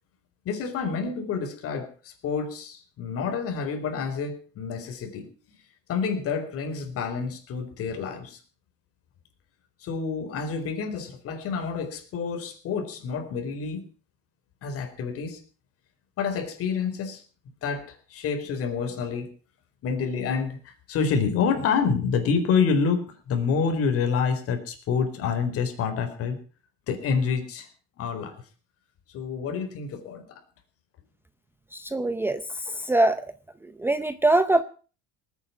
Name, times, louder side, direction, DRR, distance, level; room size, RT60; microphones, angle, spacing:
voice 1, 0.4-5.3 5.9-8.4 9.8-13.8 14.6-15.4 16.2-17.2 17.6-19.3 19.8-26.4 26.9-27.7 28.0-28.4 29.1-30.4, left 5 dB, 50° left, 6 dB, 4.4 m, -28 dB
voice 2, 31.7-33.2 33.6-34.6, right 2 dB, 5° right, 12 dB, 0.7 m, -23 dB
19.5 x 9.4 x 7.2 m, 0.38 s
cardioid pair, 145°, 29 cm